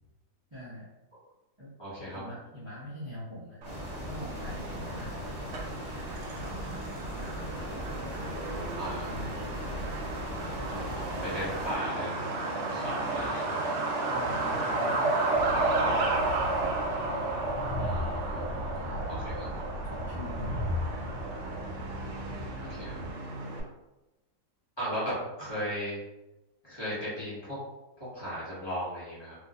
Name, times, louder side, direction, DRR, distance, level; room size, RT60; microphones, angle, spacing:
voice 1, 0.5-0.9 1.6-1.7 2.0-5.6 6.4-9.9 14.0-16.8 18.7-19.4 19.8-21.1, equal, 30° right, -9 dB, 0.5 m, -45 dB
voice 2, 1.8-2.3 8.5-9.1 10.7-12.2 12.7-13.8 17.8-18.6 19.1-19.7 22.6-23.0 24.8-26.0 26.6-27.6 28.0-29.4, equal, 20° left, -10 dB, 1.0 m, -37 dB
sound 1, 3.6-11.7, equal, 45° left, 0.9 m, -39 dB
Truck, 3.6-23.6, right 2 dB, 70° right, 0.7 m, -33 dB
Train, 15.3-23.1, left 1 dB, 80° left, 1.3 m, -37 dB
3.0 x 2.6 x 2.4 m, 1.0 s
omnidirectional pair, 1.9 m